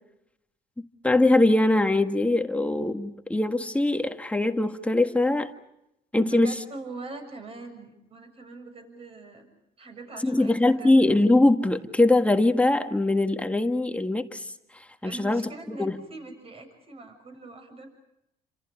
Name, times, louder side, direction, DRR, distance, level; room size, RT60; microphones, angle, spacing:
voice 1, 1.0-5.5 6.1-6.6 10.2-14.5 15.0-15.4 15.7-16.0, left 2 dB, 5° left, 1.7 m, -22 dB
voice 2, 6.2-9.5 9.8-11.0 15.0-18.0, right 3 dB, 35° right, 7.0 m, -42 dB
29.5 x 27.5 x 5.0 m
cardioid pair, 110°, 17 cm